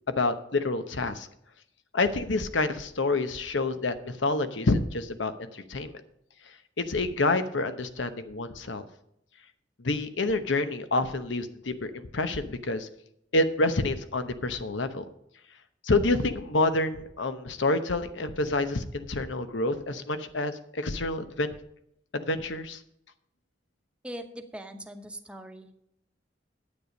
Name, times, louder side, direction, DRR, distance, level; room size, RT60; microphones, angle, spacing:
voice 1, 0.2-1.3 1.9-6.0 6.8-8.9 9.8-12.9 13.3-15.0 15.8-21.5 22.1-22.8, left 2 dB, 90° left, 10 dB, 0.9 m, -28 dB
voice 2, 24.0-25.7, equal, 5° right, 5 dB, 0.9 m, -41 dB
9.8 x 8.3 x 5.2 m, 0.75 s
head